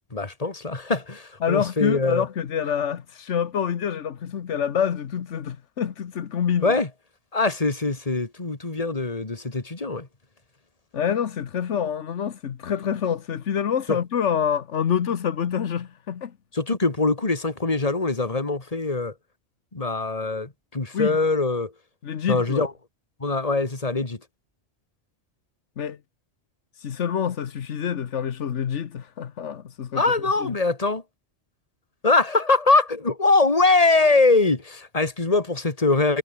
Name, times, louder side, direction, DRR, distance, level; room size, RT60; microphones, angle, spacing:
voice 1, 0.1-2.3 6.6-6.9 7.3-10.1 13.9-14.0 16.5-19.1 19.7-21.7 22.3-22.7 23.2-24.2 30.0-31.0 32.0-36.2, left 3 dB, 30° left, 2.3 m, -22 dB
voice 2, 1.4-6.7 10.9-16.3 20.9-21.2 22.0-22.7 25.8-26.0 26.8-30.0 30.4-30.6, left 8 dB, 90° left, 1.4 m, -27 dB
omnidirectional pair, 1.2 m